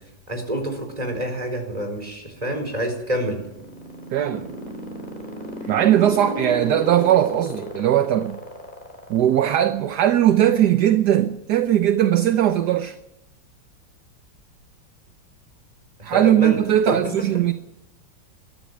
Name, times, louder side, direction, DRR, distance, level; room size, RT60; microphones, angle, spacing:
voice 1, 0.3-3.4 16.0-16.6 16.9-17.1, equal, 20° right, 4.4 m, -27 dB
sound 1, 3.4-9.7, equal, 25° left, 4.5 m, -33 dB
voice 2, 4.1-4.5 5.6-8.4 9.1-13.0 16.0-17.5, right 11 dB, 65° right, 1.4 m, -19 dB
22.0 x 13.5 x 9.4 m
omnidirectional pair, 2.1 m